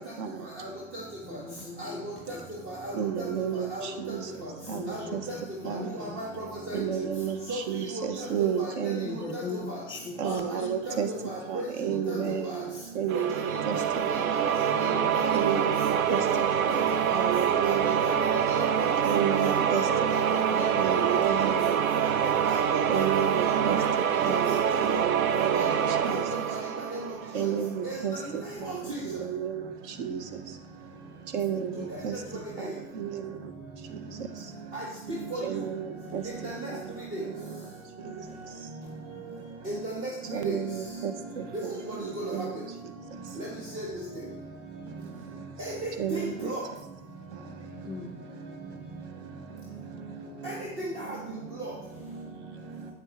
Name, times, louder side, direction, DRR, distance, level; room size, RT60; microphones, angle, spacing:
voice 1, 0.2-0.5 2.9-4.3 4.7-5.2 5.6-5.9 6.7-9.2 10.2-11.1 11.5-13.8 14.2-14.4 15.3-16.2 16.6-18.2 19.0-19.9 20.3-21.9 22.9-26.4 27.3-30.4 31.3-32.2 32.6-33.5 33.9-34.3 35.4-37.6 38.0-38.2 40.3-42.6 46.0-46.5, right 8 dB, 55° right, 8 dB, 1.1 m, -32 dB
voice 2, 1.2-2.1 2.3-2.4 4.4-6.1 9.0-10.7 11.9-12.3 14.7-15.1 21.1-21.2 25.5-25.9 31.6-31.9 47.8-48.1, left 4 dB, 10° left, 3 dB, 1.6 m, -41 dB
voice 3, 1.8-2.4 2.7-3.0 3.5-3.9 4.9-5.0 5.3-5.4 5.7-6.8 7.5-7.6 7.9-8.3 8.6-8.9 9.3-9.4 9.7-9.8 10.2-10.4 10.9-11.0 11.2-11.6 12.1-12.2 12.4-12.6 13.1-13.2 13.5-14.9 15.1-15.2 15.5-15.7 16.1-16.2 16.7-16.8 17.1-17.2 17.6-18.1 18.5-18.9 19.3-20.2 20.5-21.2 22.0-23.0 23.3-23.9 24.3-24.4 25.5-26.2 26.5-26.6 26.9-27.0 27.4-27.5 27.8-28.2 28.7-29.0 32.6-32.7 34.7-35.4 36.4-36.7 37.1-37.2 39.7-39.9 40.3-40.5 41.9-42.0 43.4-43.5 43.7-43.9 45.6-46.6 50.4-51.2 51.6-51.7, right 1 dB, 30° right, -3 dB, 1.7 m, -36 dB
sound 1, 13.1-27.7, right 8 dB, 75° right, 0.7 m, -26 dB
8.2 x 7.7 x 3.3 m, 0.92 s
hypercardioid pair, 105°, 42 cm